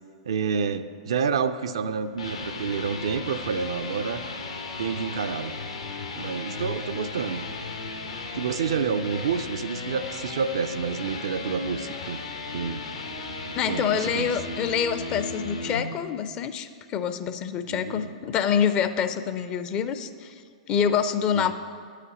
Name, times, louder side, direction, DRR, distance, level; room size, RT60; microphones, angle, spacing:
voice 1, 0.3-4.2 4.8-5.6 6.2-7.4 8.3-12.2 12.5-12.8 13.7-14.3 17.7-18.1 21.3-21.5, right 6 dB, 60° right, 11 dB, 0.4 m, -29 dB
sound 1, 2.0-15.8, left 3 dB, 75° left, 0.9 m, -35 dB
voice 2, 13.6-20.3 20.7-21.5, left 8 dB, 30° left, 11 dB, 0.5 m, -26 dB
9.6 x 4.9 x 6.9 m, 2.1 s
figure-of-eight pair, 100°, 3 cm